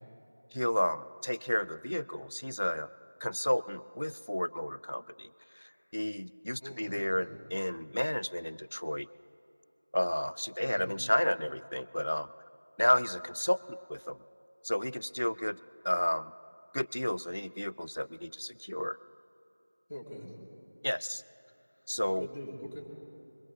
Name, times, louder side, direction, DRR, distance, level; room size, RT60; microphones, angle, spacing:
voice 1, 0.5-2.9 3.2-5.3 5.6-9.1 9.9-12.3 12.8-14.2 14.6-15.6 15.8-16.3 16.7-19.0 20.8-21.2 21.9-22.3, left 1 dB, 45° left, 17 dB, 0.3 m, -32 dB
voice 2, 6.6-7.3 10.6-10.9 19.9-20.3 22.1-22.9, equal, 10° left, -15 dB, 1.4 m, -43 dB
22.5 x 14.0 x 3.8 m, 2.8 s
figure-of-eight pair, 180°, 0 cm